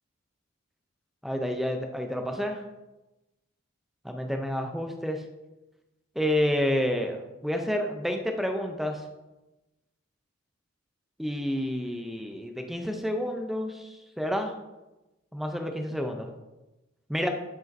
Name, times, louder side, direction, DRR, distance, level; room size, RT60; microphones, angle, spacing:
voice 1, 1.2-2.6 4.0-5.2 6.2-7.2 7.4-9.0 11.2-14.5 15.3-16.3 17.1-17.3, equal, ahead, 4 dB, 0.5 m, -29 dB
8.9 x 5.0 x 2.6 m, 1.0 s
head